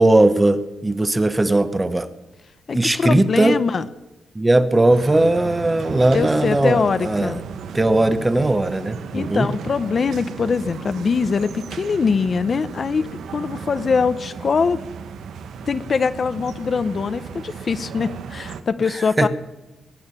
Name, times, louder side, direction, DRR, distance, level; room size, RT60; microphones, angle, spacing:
voice 1, 0.0-2.1 2.7-3.6 4.3-7.3 7.7-9.5 18.9-19.3, right 2 dB, 15° right, 11 dB, 1.0 m, -18 dB
voice 2, 2.7-3.9 6.1-7.4 9.1-14.8 15.7-19.3, left 5 dB, 45° left, 12 dB, 0.7 m, -22 dB
sound 1, 4.9-18.6, right 6 dB, 85° right, 1.0 m, -35 dB
21.5 x 9.4 x 7.0 m, 1.0 s
cardioid pair, 110°, 0 cm